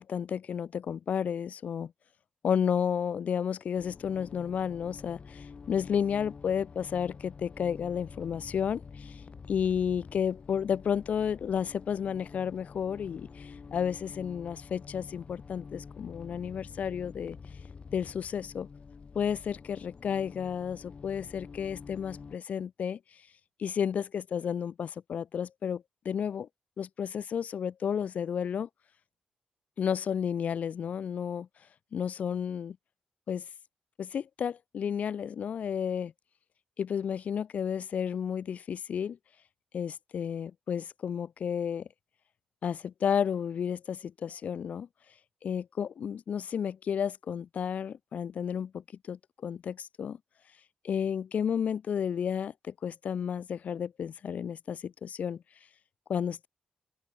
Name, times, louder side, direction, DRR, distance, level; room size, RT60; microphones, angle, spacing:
voice 1, 0.0-1.9 2.4-9.2 9.5-17.4 17.9-18.7 19.1-23.0 23.6-26.5 26.8-28.7 29.8-31.5 31.9-32.8 33.3-33.4 34.0-36.1 36.8-39.2 39.7-41.9 42.6-44.9 45.4-50.2 50.8-55.4 56.1-56.5, left 8 dB, 70° left, 3.2 m, -32 dB
sound 1, 3.8-22.4, left 5 dB, 50° left, 5.9 m, -48 dB
open air
cardioid pair, 60°, 3 cm